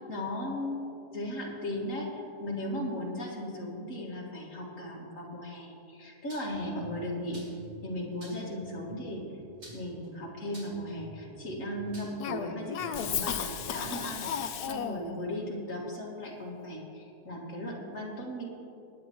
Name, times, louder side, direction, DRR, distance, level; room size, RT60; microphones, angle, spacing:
voice 1, 0.1-0.8 1.1-7.4 7.8-9.2 9.7-18.4, left 1 dB, 50° left, -3 dB, 2.4 m, -37 dB
sound 1, 6.3-6.6 7.3-7.7 8.2-8.5 9.6-10.1 10.5-10.9 11.9-12.3 13.2-13.4, right 1 dB, 65° right, 3.7 m, -50 dB
sound 2, 6.5-15.0, right 3 dB, 45° right, 0.5 m, -51 dB
Cough, 12.2-15.1, left 8 dB, 75° left, 1.2 m, -34 dB
21.0 x 9.7 x 3.1 m, 2.8 s
omnidirectional pair, 1.8 m